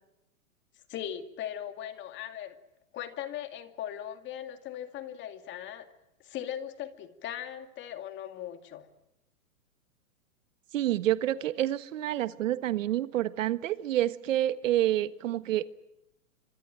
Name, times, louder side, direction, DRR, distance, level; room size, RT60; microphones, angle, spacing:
voice 1, 0.9-2.5 2.9-5.9 6.2-8.9, left 10 dB, 25° left, 8 dB, 2.3 m, -39 dB
voice 2, 10.7-15.6, right 13 dB, 60° right, 13 dB, 1.4 m, -28 dB
27.0 x 25.0 x 9.0 m, 0.87 s
hypercardioid pair, 135°, 43 cm